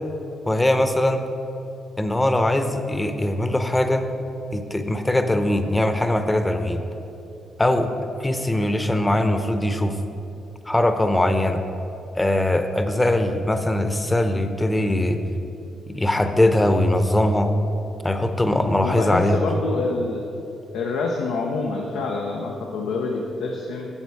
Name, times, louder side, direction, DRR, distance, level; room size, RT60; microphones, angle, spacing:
voice 1, 0.5-1.2 2.0-4.1 4.5-6.8 7.6-7.9 8.2-10.0 10.7-11.6 12.1-15.2 15.9-17.5 18.0-19.4, left 1 dB, 15° left, 7 dB, 0.8 m, -21 dB
voice 2, 18.8-20.2 20.7-23.9, left 3 dB, 85° left, 0 dB, 0.8 m, -26 dB
9.8 x 7.2 x 4.8 m, 2.8 s
supercardioid pair, 65°, 0 cm